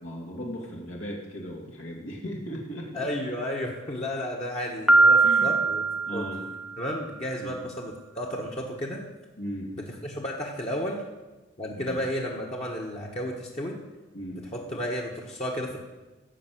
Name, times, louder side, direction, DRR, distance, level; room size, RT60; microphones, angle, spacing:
voice 1, 0.0-3.1 5.2-5.6 6.1-6.5 7.4-7.6 9.4-9.7 11.7-12.0 14.1-14.5, equal, 80° left, -1 dB, 2.6 m, -37 dB
voice 2, 2.9-5.8 6.1-6.2 6.8-9.0 9.7-11.0 11.6-13.8 14.5-15.9, equal, 30° left, -2 dB, 1.3 m, -32 dB
Piano, 4.9-6.8, right 3 dB, 5° right, 0.6 m, -21 dB
15.5 x 5.4 x 7.6 m, 1.2 s
head